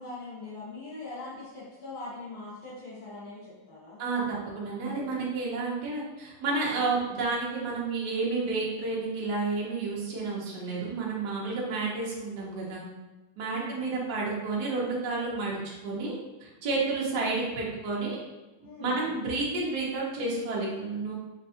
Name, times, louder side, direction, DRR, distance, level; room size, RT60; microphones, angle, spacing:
voice 1, 0.0-4.0 13.5-13.8 18.6-19.0, left 3 dB, 70° left, -8 dB, 1.6 m, -41 dB
voice 2, 4.0-12.8 13.4-15.6 15.8-18.2 18.8-21.1, right 3 dB, 60° right, -4 dB, 1.2 m, -30 dB
5.4 x 2.3 x 2.7 m, 1.1 s
omnidirectional pair, 2.4 m